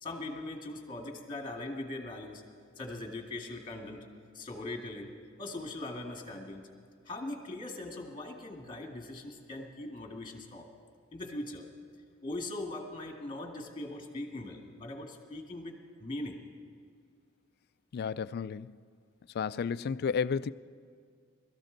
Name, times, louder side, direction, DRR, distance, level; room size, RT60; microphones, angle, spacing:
voice 1, 0.0-2.4 2.8-4.0 4.3-6.7 7.1-10.7 11.1-11.7 12.2-16.4, left 2 dB, 25° left, 1.9 m, -40 dB
voice 2, 17.9-18.8 19.3-20.5, left 6 dB, 50° left, 0.3 m, -32 dB
22.0 x 13.5 x 3.9 m
head